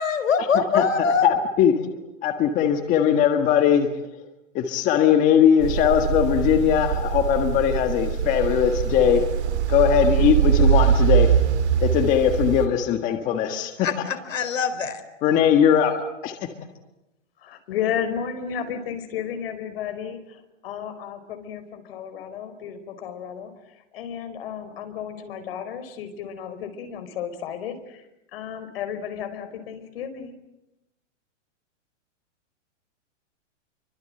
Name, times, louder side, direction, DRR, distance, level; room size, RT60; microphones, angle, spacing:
voice 1, 0.0-1.3 13.8-15.0, left 5 dB, 85° left, 4.0 m, -23 dB
voice 2, 0.5-1.9 2.2-3.9 4.5-9.2 9.7-11.4 11.8-13.9 15.2-15.9 16.2-16.4, left 9 dB, 20° left, 1.6 m, -20 dB
sound 1, 5.6-12.7, right 8 dB, 60° right, 3.0 m, -22 dB
voice 3, 17.4-23.5 23.9-28.0 28.3-30.4, left 8 dB, 50° left, 4.9 m, -33 dB
28.5 x 24.5 x 7.8 m
hypercardioid pair, 165°, 37 cm